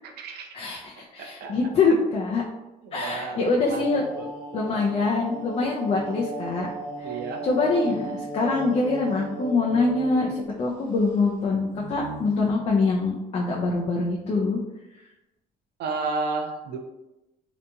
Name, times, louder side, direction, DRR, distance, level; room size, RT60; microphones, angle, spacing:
voice 1, 0.0-0.5 1.2-1.5 2.8-3.4 3.7-3.9 4.1-4.3 4.7-4.8 7.0-7.4 15.8-16.8, right 4 dB, 70° right, 4 dB, 0.5 m, -32 dB
voice 2, 0.5-2.4 2.9-4.0 4.5-6.7 7.0-7.2 7.4-10.3 10.6-14.6, left 3 dB, 35° left, -2 dB, 0.4 m, -24 dB
sound 1, 3.8-10.7 11.0-11.1 11.7-12.5, right 2 dB, 30° right, 0.9 m, -36 dB
2.8 x 2.5 x 2.2 m, 0.98 s
cardioid pair, 110°, 17 cm